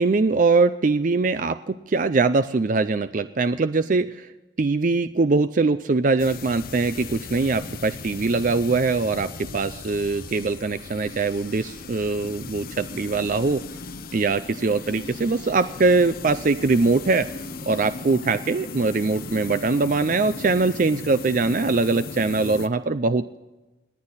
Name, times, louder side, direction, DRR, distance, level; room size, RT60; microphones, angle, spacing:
voice 1, 0.0-4.3 4.6-13.6 14.1-17.3 17.7-23.4, right 3 dB, 45° right, 11 dB, 0.4 m, -22 dB
sound 1, 6.2-22.7, left 4 dB, 50° left, 0.7 m, -37 dB
29.5 x 9.8 x 4.1 m, 1.1 s
head